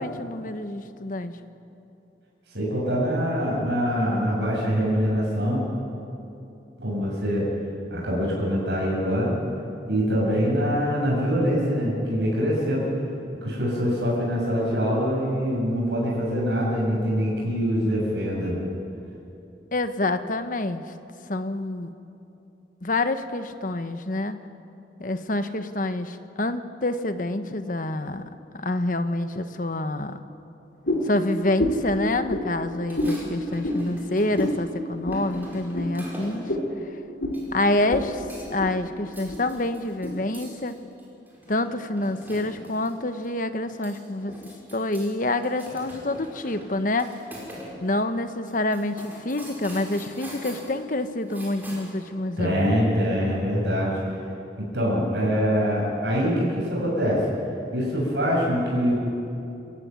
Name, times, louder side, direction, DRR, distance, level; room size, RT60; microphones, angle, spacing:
voice 1, 0.0-1.4 19.7-20.8 21.3-21.9 22.8-24.4 25.0-30.2 31.0-36.5 37.5-38.2 38.5-40.8 41.5-44.4 44.7-47.1 47.8-52.8, left 2 dB, 50° left, 9 dB, 1.1 m, -27 dB
voice 2, 2.5-5.6 6.8-7.5 7.9-9.3 9.9-12.9 13.4-18.6 52.4-54.0 54.6-57.3 57.7-58.9, equal, 80° right, -4 dB, 7.5 m, -24 dB
sound 1, 30.8-31.1 31.6-31.9 32.3-32.5 32.9-33.2 33.6-33.8 34.3-34.6 35.0-35.2 35.7-35.9 36.5-36.7 37.2-37.4 37.9-38.1 38.4-38.7 39.3-39.4 40.0-40.1, left 1 dB, 75° left, 4.3 m, -26 dB
sound 2, 32.8-34.7 35.1-36.5 37.3-38.0 38.3-38.7 39.0-42.9 43.2-43.3 43.6-45.1 45.4-47.7 48.0-48.1 48.5-52.0, equal, 10° right, 5.6 m, -43 dB
26.5 x 15.0 x 9.5 m, 2.8 s
head